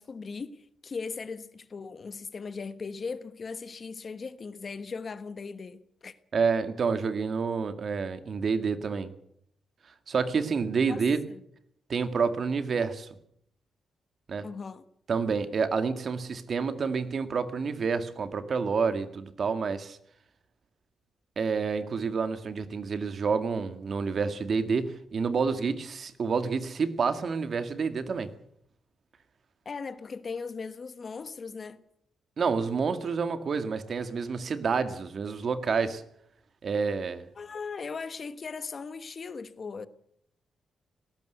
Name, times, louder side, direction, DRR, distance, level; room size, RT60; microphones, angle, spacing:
voice 1, 0.0-6.1 10.9-11.0 11.3-11.4 14.4-14.8 29.6-31.8 37.4-39.9, left 4 dB, 40° left, 1.3 m, -38 dB
voice 2, 6.3-9.1 10.1-11.2 11.9-13.1 14.3-14.5 15.1-20.0 21.4-28.3 32.4-36.0 36.6-37.3, right 5 dB, 50° right, 2.1 m, -28 dB
19.5 x 18.0 x 8.1 m
cardioid pair, 115°, 0 cm